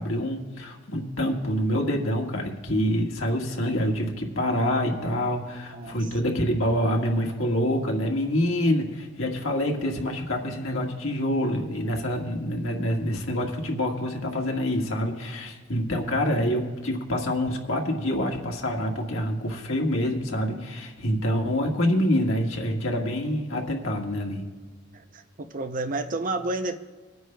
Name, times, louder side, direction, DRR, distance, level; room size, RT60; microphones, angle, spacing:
voice 1, 0.0-24.4, equal, 70° left, 1 dB, 1.6 m, -26 dB
voice 2, 24.9-26.8, right 2 dB, 40° right, 9 dB, 0.6 m, -31 dB
26.0 x 9.3 x 2.3 m, 1.4 s
head